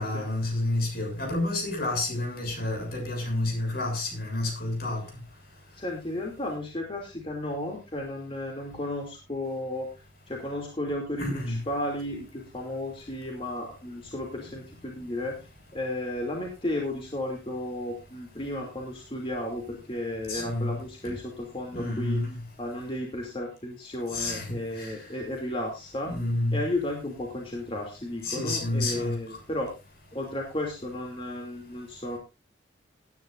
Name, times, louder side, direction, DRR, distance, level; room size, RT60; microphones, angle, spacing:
voice 1, 0.0-5.0 11.2-11.6 20.3-20.7 21.7-22.3 24.1-24.9 26.1-26.6 28.2-29.2, left 2 dB, 55° left, 3 dB, 7.1 m, -29 dB
voice 2, 5.7-9.9 10.3-22.2 22.6-26.1 26.5-29.7 30.1-32.2, left 1 dB, 30° left, 0 dB, 2.7 m, -33 dB
18.5 x 10.5 x 2.6 m, 0.28 s
head